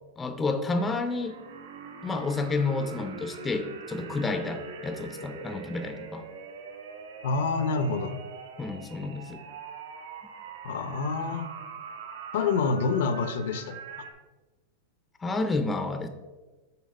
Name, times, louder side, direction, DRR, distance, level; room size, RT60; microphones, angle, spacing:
voice 1, 0.2-1.4 2.0-6.2 8.6-9.4 15.2-16.1, left 3 dB, 10° left, 8 dB, 0.5 m, -30 dB
sound 1, 0.7-14.1, right 5 dB, 85° right, 1.3 m, -43 dB
voice 2, 7.2-8.1 10.6-11.5 12.3-13.8, left 4 dB, 70° left, 10 dB, 0.8 m, -27 dB
7.2 x 4.1 x 5.3 m, 1.2 s
supercardioid pair, 155°, 0 cm